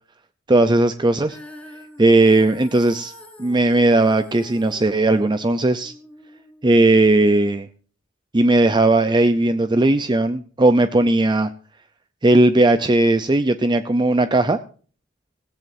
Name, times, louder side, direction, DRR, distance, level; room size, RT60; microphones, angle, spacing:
voice 1, 0.5-1.4 2.0-3.1 3.4-5.9 6.6-7.7 8.3-11.5 12.2-14.6, right 2 dB, 25° right, 10 dB, 0.6 m, -17 dB
Female singing, 1.3-7.5, left 1 dB, 5° left, 2.4 m, -45 dB
17.0 x 16.5 x 2.7 m, 0.41 s
head